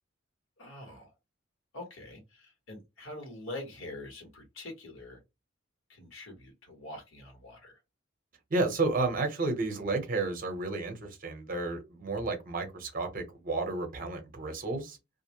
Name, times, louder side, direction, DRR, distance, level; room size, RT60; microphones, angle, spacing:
voice 1, 0.6-1.1 1.7-5.2 5.9-7.7, left 2 dB, 80° left, 1.3 m, -44 dB
voice 2, 8.5-15.0, right 3 dB, 45° right, 0.8 m, -32 dB
2.5 x 2.1 x 2.9 m
head